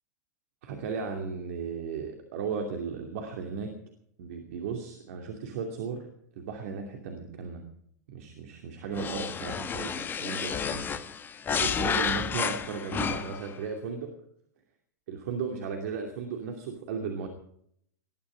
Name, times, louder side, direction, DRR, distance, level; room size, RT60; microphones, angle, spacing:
voice 1, 0.6-3.7 4.2-6.0 6.4-7.6 8.1-10.9 11.6-14.1 15.1-17.3, right 5 dB, 55° right, 4 dB, 2.7 m, -35 dB
sound 1, 8.9-13.5, left 7 dB, 20° left, 1.1 m, -31 dB
20.0 x 13.0 x 5.1 m, 0.69 s
figure-of-eight pair, 100°, 9 cm